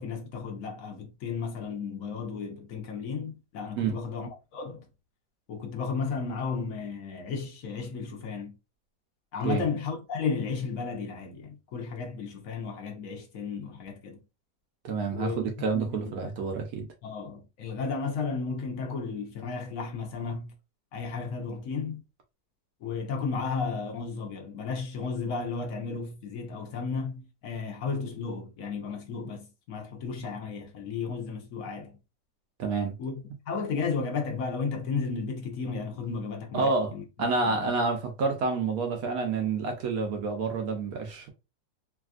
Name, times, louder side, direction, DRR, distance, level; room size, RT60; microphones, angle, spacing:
voice 1, 0.0-4.8 5.5-8.5 9.3-14.2 15.1-16.3 17.0-20.5 20.9-22.0 22.8-32.0 33.0-37.0 37.4-37.7, left 5 dB, 60° left, 1.0 m, -34 dB
voice 2, 14.8-15.3 15.6-16.9 32.6-33.0 36.5-41.3, right 4 dB, 65° right, 0.9 m, -28 dB
3.3 x 2.5 x 2.3 m
omnidirectional pair, 2.0 m